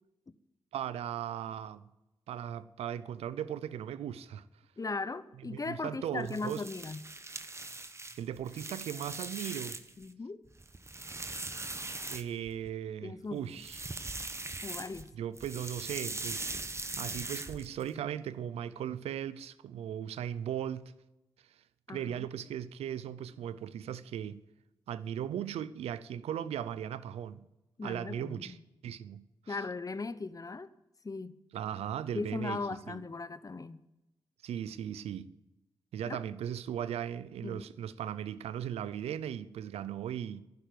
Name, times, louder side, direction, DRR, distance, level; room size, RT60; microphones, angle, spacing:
voice 1, 0.7-1.9 2.3-4.4 5.5-6.6 8.2-9.8 12.1-13.8 15.2-16.5 17.0-20.9 21.9-24.4 24.9-27.5 27.8-28.6 28.8-29.6 31.5-33.0 34.4-35.3 35.9-40.4, right 10 dB, 85° right, 0.6 m, -38 dB
voice 2, 4.8-7.1 10.0-10.4 13.0-13.7 14.6-15.1 21.9-22.3 27.8-28.6 29.5-30.7 31.0-31.4 32.1-33.8 36.0-36.2 37.4-37.7, left 3 dB, 35° left, 0.9 m, -38 dB
sound 1, 6.2-10.0 10.5-12.7 13.5-15.1 15.4-17.9, right 2 dB, 25° right, 1.2 m, -41 dB
11.5 x 9.7 x 9.3 m
supercardioid pair, 45°, 10 cm